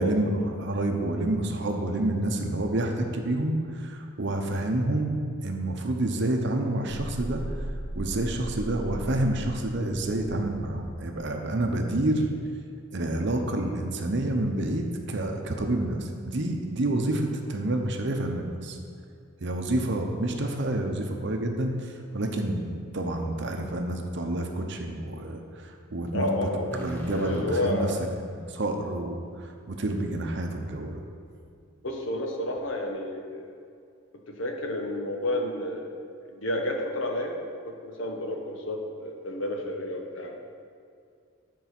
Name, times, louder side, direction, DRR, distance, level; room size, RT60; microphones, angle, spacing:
voice 1, 0.0-5.2 5.4-7.6 7.9-12.3 12.9-18.8 19.4-31.0, right 1 dB, 55° right, 4 dB, 0.8 m, -28 dB
sound 1, 6.9-11.5, right 1 dB, 10° right, 0.4 m, -37 dB
voice 2, 26.1-26.8 27.1-28.0 31.8-33.5 34.3-35.9 36.3-37.4 37.6-40.4, left 1 dB, 65° left, 2 dB, 1.0 m, -30 dB
sound 2, 26.7-30.5, equal, 10° left, 1.0 m, -42 dB
9.6 x 4.7 x 5.9 m, 2.3 s
head